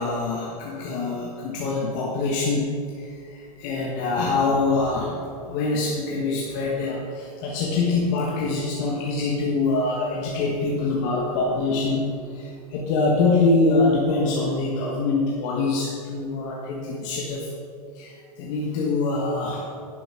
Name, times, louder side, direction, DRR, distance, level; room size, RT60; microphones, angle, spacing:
voice 1, 0.0-17.5 17.9-19.7, left 3 dB, 50° left, -3 dB, 1.4 m, -24 dB
10.0 x 7.7 x 3.7 m, 2.4 s
hypercardioid pair, 100°, 20 cm